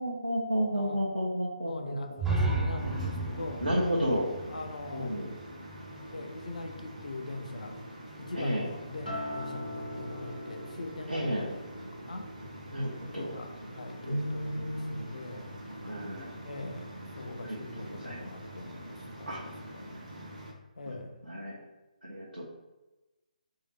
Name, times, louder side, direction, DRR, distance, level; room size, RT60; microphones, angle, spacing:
voice 1, 0.0-2.0 3.6-4.3 4.9-5.3 8.4-8.7 11.1-11.5 12.7-13.3 14.0-15.0 15.8-16.4 17.4-17.7 18.0-18.2 19.3-19.4 20.9-21.0 21.3-21.6 22.0-22.4, equal, 85° right, -5 dB, 0.7 m, -31 dB
voice 2, 0.7-1.0 1.6-3.6 4.5-5.2 6.1-7.8 8.2-12.3 13.0-15.6 16.4-20.0 20.8-21.2, left 2 dB, 60° left, 5 dB, 0.5 m, -42 dB
sound 1, 2.2-6.0, right 2 dB, 10° right, 0.4 m, -33 dB
sound 2, 2.8-20.5, right 1 dB, 55° right, 0.8 m, -45 dB
Acoustic guitar, 9.1-13.5 13.9-14.3, left 1 dB, 80° left, 0.9 m, -43 dB
3.1 x 2.7 x 3.4 m, 1.0 s
figure-of-eight pair, 140°, 5 cm